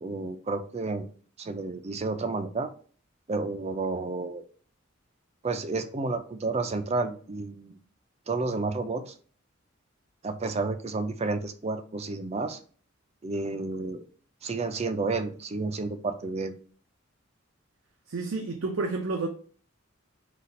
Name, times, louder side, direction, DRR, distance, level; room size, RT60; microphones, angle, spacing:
voice 1, 0.0-1.1 1.4-2.7 3.3-4.4 5.4-7.8 8.3-9.1 10.2-12.6 13.2-14.0 14.4-16.5, right 3 dB, 30° right, 0.4 m, -31 dB
voice 2, 18.1-19.3, right 3 dB, 80° right, 0.6 m, -30 dB
4.1 x 2.4 x 4.2 m
head